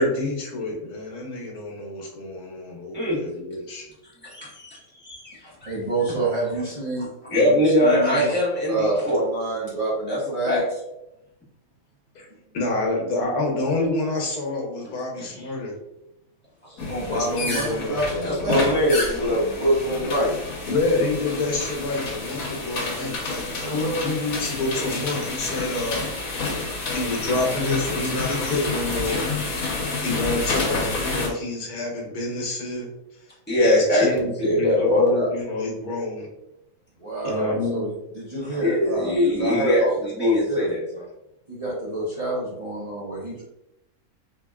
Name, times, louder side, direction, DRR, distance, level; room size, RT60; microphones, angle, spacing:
voice 1, 0.0-3.8 12.1-12.3 12.5-15.7 17.1-18.3 20.7-26.0 26.9-29.2 30.0-32.9 33.6-36.3 37.2-37.9, left 2 dB, 85° left, 0 dB, 1.4 m, -27 dB
voice 2, 4.2-5.7 6.1-6.2 7.3-9.2 10.1-10.2 10.4-10.6 15.2-15.4 16.7-16.8 18.2-20.3 21.0-21.1 33.5-35.3 38.4-41.0, left 1 dB, 5° left, -9 dB, 1.3 m, -22 dB
voice 3, 5.6-8.4 8.7-10.6 16.9-18.7 23.5-24.1 37.0-39.9 40.2-40.7 41.5-43.4, right 2 dB, 30° right, -7 dB, 0.9 m, -28 dB
sound 1, 16.8-31.3, left 3 dB, 65° left, 1.3 m, -29 dB
4.1 x 2.9 x 2.4 m, 0.88 s
omnidirectional pair, 1.6 m